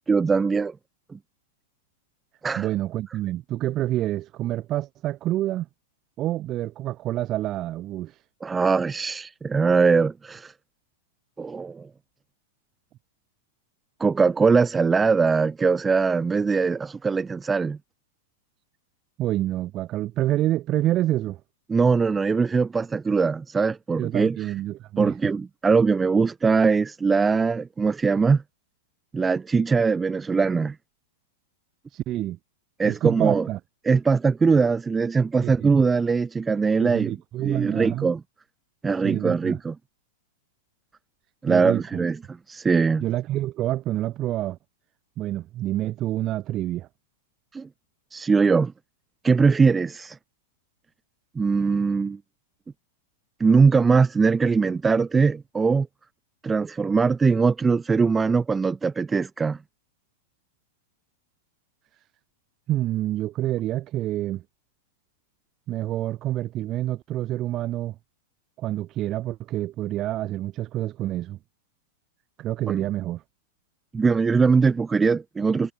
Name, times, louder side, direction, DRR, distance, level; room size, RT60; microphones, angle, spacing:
voice 1, 0.1-0.7 1.1-1.2 2.4-2.7 8.4-10.5 11.4-11.9 14.0-17.8 21.7-24.4 25.0-28.4 29.1-30.8 32.8-33.5 33.9-37.1 37.4-38.2 38.8-39.7 41.4-43.0 47.5-47.7 48.1-48.7 49.2-50.2 51.4-52.2 53.4-55.9 56.4-59.6 72.7-72.9 73.9-75.7, right 5 dB, 15° right, 1.8 m, -21 dB
voice 2, 2.6-5.7 6.2-8.2 19.2-21.4 24.0-25.2 31.9-32.4 32.8-33.6 35.4-35.7 36.8-38.1 39.0-39.6 41.5-42.1 43.0-44.6 45.2-46.9 62.7-64.4 65.7-68.0 68.6-71.4 72.4-73.2, right 14 dB, 35° right, 5.3 m, -27 dB
hypercardioid pair, 120°, 0 cm